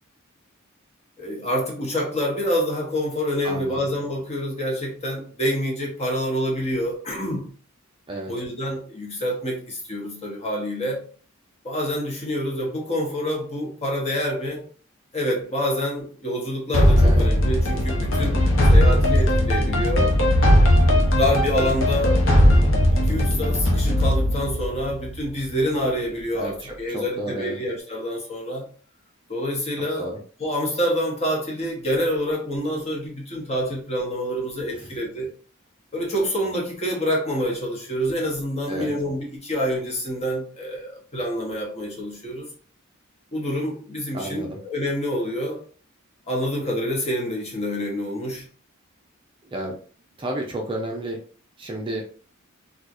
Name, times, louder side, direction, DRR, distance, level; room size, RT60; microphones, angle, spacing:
voice 1, 1.2-7.5 8.3-11.1 11.6-14.6 15.1-20.2 20.8-22.3 22.9-28.7 29.3-35.3 35.9-42.5 43.3-45.6 46.3-48.4, equal, 30° left, 1.0 m, -27 dB
voice 2, 3.4-3.8 8.1-8.3 17.0-17.2 26.3-27.6 29.7-30.2 34.7-34.8 38.7-38.9 44.1-44.6 49.4-49.8 50.2-51.2 51.6-52.0, right 1 dB, 25° right, 0.5 m, -31 dB
sound 1, 16.7-25.6, left 1 dB, 60° left, 0.8 m, -18 dB
4.4 x 2.3 x 2.5 m
head